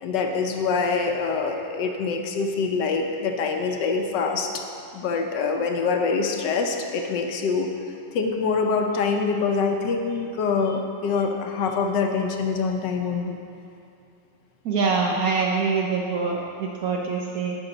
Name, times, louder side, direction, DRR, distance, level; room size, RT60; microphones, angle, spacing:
voice 1, 0.0-4.6 4.9-7.7 8.1-13.4, left 4 dB, 75° left, 3 dB, 1.2 m, -25 dB
voice 2, 14.6-17.6, right 4 dB, 65° right, -1 dB, 0.9 m, -24 dB
10.5 x 5.6 x 3.9 m, 2.5 s
omnidirectional pair, 2.1 m